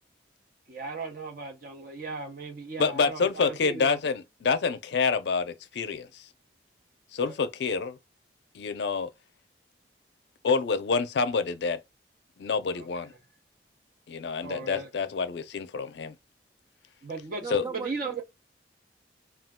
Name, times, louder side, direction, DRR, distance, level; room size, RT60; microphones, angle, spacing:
voice 1, 0.7-4.0 7.2-7.3 12.8-12.9 14.4-14.9 17.0-18.2, right 3 dB, 50° right, 0.7 m, -37 dB
voice 2, 2.8-6.3 7.1-8.0 8.5-9.1 10.4-11.8 12.4-13.1 14.1-16.1 17.5-17.6, left 5 dB, 65° left, 0.4 m, -27 dB
voice 3, 17.4-18.2, right 5 dB, 20° right, 0.3 m, -38 dB
2.3 x 2.1 x 3.5 m
head